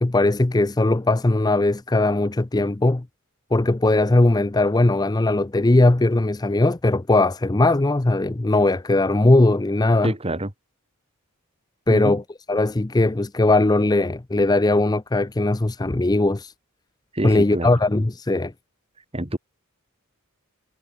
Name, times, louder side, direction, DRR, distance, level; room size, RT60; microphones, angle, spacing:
voice 1, 0.0-3.1 3.5-10.1 11.9-12.2 12.5-16.5 17.2-18.5, left 2 dB, 20° left, 0.5 m, -19 dB
voice 2, 10.0-10.5 11.9-12.2 17.1-17.7 19.1-19.4, right 1 dB, 25° right, 2.3 m, -26 dB
head